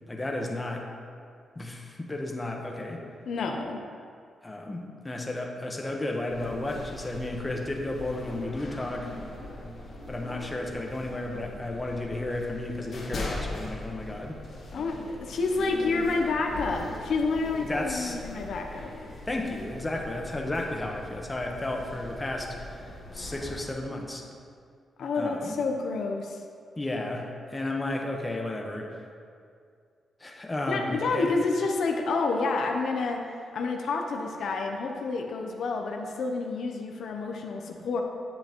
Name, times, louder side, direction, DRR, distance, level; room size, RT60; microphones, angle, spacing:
voice 1, 0.1-0.8 1.5-3.0 4.4-9.1 10.1-14.4 17.6-18.2 19.3-24.2 25.2-25.6 26.8-28.9 30.2-31.3, left 2 dB, 20° left, 0 dB, 1.1 m, -33 dB
voice 2, 3.3-3.8 14.7-18.9 25.0-26.4 30.7-33.2 33.5-38.0, left 3 dB, 75° left, 2 dB, 0.7 m, -29 dB
sound 1, 6.3-23.7, left 2 dB, 55° left, 1.9 m, -41 dB
9.4 x 7.7 x 3.0 m, 2.2 s
cardioid pair, 100°, 0 cm